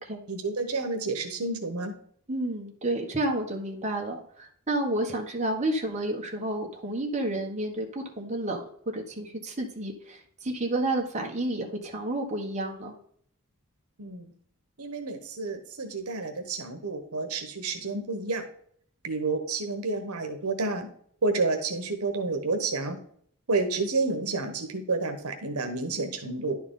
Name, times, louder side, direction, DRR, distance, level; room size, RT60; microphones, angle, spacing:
voice 1, 0.3-1.9 14.0-14.3 14.8-18.4 19.0-20.9 21.2-23.0 23.5-26.6, right 3 dB, 80° right, 6 dB, 1.1 m, -30 dB
voice 2, 2.3-12.9, right 1 dB, 30° right, 1 dB, 1.5 m, -30 dB
11.0 x 4.7 x 3.8 m, 0.63 s
head